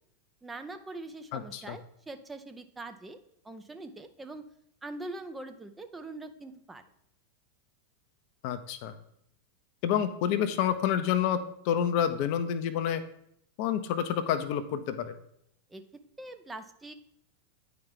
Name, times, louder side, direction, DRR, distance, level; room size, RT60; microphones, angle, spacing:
voice 1, 0.4-3.2 3.4-4.4 4.8-6.8 15.7-15.8 16.2-16.9, right 2 dB, 10° right, 8 dB, 0.5 m, -43 dB
voice 2, 1.3-1.8 8.4-8.9 9.8-13.0 13.6-15.1, left 9 dB, 45° left, 11 dB, 0.6 m, -28 dB
9.3 x 4.8 x 3.7 m, 0.73 s
figure-of-eight pair, 90°, 0 cm